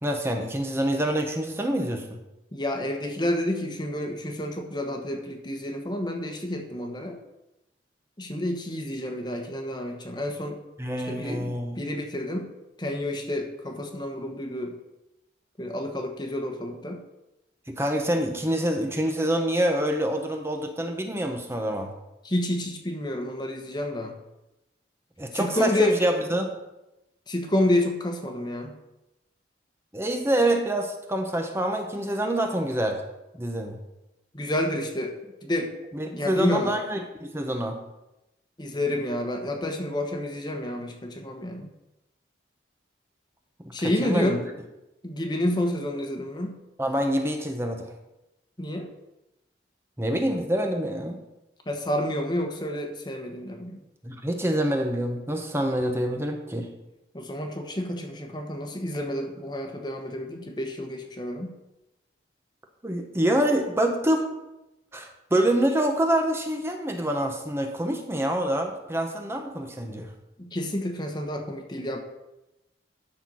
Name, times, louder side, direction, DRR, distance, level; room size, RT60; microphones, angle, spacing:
voice 1, 0.0-2.2 10.8-11.8 17.7-21.9 25.2-26.5 29.9-33.0 33.3-33.8 35.9-37.8 43.8-44.4 46.8-47.8 50.0-51.2 54.0-56.7 62.8-64.3 64.9-70.1, right 1 dB, 15° right, 4 dB, 0.9 m, -26 dB
voice 2, 2.5-7.2 8.2-10.6 11.1-12.5 12.8-14.8 15.6-17.0 22.2-24.2 25.3-26.0 27.3-28.8 34.3-35.1 35.4-35.7 36.1-36.7 38.6-41.7 43.7-44.4 45.0-46.6 48.6-48.9 51.7-53.8 57.1-61.6 70.4-72.0, left 1 dB, 25° left, 4 dB, 1.2 m, -29 dB
12.0 x 4.4 x 6.3 m, 0.95 s
head